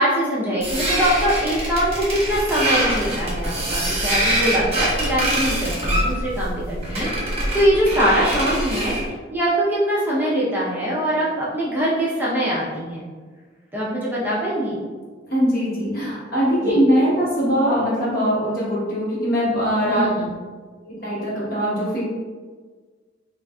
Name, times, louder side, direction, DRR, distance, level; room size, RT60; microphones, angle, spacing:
voice 1, 0.0-9.0 9.3-13.0 13.7-14.7 16.6-16.8 19.9-20.3, equal, 10° right, -8 dB, 0.5 m, -22 dB
sound 1, 0.6-9.1, right 1 dB, 35° right, 0.9 m, -24 dB
voice 2, 15.3-20.1 20.8-22.0, equal, 55° left, -8 dB, 1.2 m, -21 dB
3.8 x 2.4 x 2.3 m, 1.5 s
head